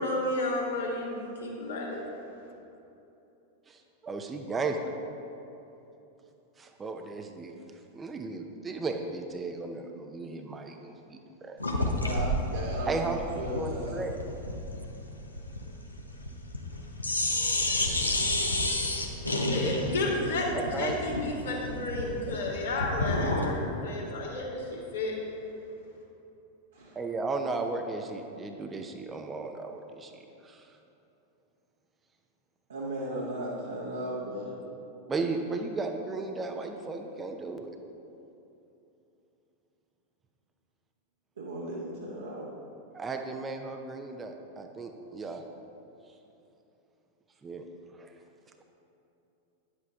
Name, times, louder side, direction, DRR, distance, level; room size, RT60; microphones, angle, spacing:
voice 1, 0.0-2.0 19.4-25.2, left 2 dB, 65° left, -3 dB, 2.0 m, -32 dB
voice 2, 3.7-4.9 6.6-7.5 7.9-11.6 12.9-14.2 20.5-21.3 27.0-30.1 30.4-30.6 35.1-37.7 42.9-45.4 47.4-47.7 48.0-48.1, right 3 dB, 20° right, 4 dB, 0.7 m, -35 dB
sound 1, 11.6-16.7 17.0-23.6, left 1 dB, 80° left, 0.9 m, -30 dB
voice 3, 11.9-14.0 18.5-19.0 26.7-27.0 32.7-34.5 41.4-42.5, right 1 dB, 70° right, -6 dB, 1.3 m, -36 dB
10.5 x 8.0 x 3.7 m, 2.9 s
figure-of-eight pair, 90°, 0 cm